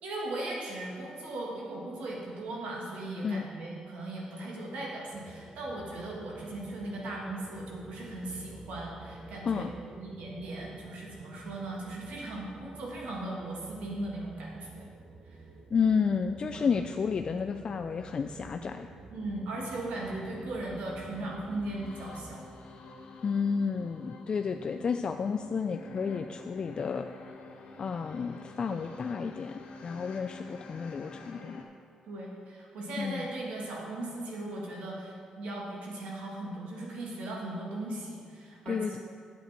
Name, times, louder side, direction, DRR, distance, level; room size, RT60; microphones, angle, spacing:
voice 1, 0.0-14.9 15.2-15.4 16.5-16.8 19.1-22.4 32.1-39.0, right 2 dB, 85° right, -3 dB, 2.1 m, -38 dB
sound 1, 5.1-22.4, right 2 dB, 30° right, 1.0 m, -50 dB
voice 2, 15.7-18.9 23.2-27.1 27.8-31.6 33.0-33.3 38.7-39.0, left 6 dB, 45° left, 7 dB, 0.3 m, -31 dB
sound 2, 18.4-31.6, left 3 dB, 75° left, 1.4 m, -49 dB
8.7 x 8.4 x 4.4 m, 2.2 s
cardioid pair, 100°, 2 cm